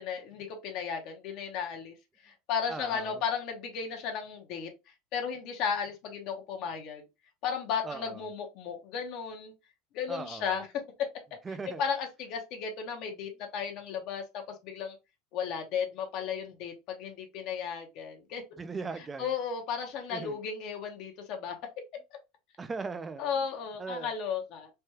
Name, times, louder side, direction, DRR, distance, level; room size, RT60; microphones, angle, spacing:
voice 1, 0.0-1.9 2.2-4.7 5.1-7.0 7.4-9.5 9.9-10.7 11.0-11.1 11.8-15.0 15.3-18.4 19.2-21.6 23.2-24.7, left 7 dB, 60° left, 0.8 m, -34 dB
voice 2, 2.7-3.2 7.8-8.3 10.1-10.6 11.4-11.8 18.6-19.3 20.1-20.4 22.6-23.3 23.8-24.1, right 4 dB, 20° right, 0.4 m, -39 dB
3.3 x 2.3 x 2.8 m
supercardioid pair, 125°, 0 cm